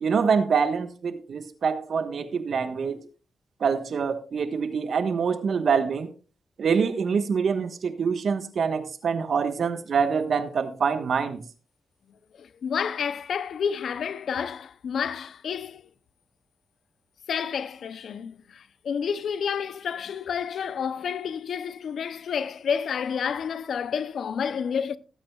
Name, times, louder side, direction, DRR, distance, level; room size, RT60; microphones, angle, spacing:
voice 1, 0.0-3.0 3.6-6.1 6.6-11.4, right 6 dB, 65° right, 1.3 m, -25 dB
voice 2, 12.4-15.9 17.3-25.0, left 7 dB, 70° left, 0.6 m, -30 dB
19.5 x 8.8 x 2.4 m
cardioid pair, 65°, 0 cm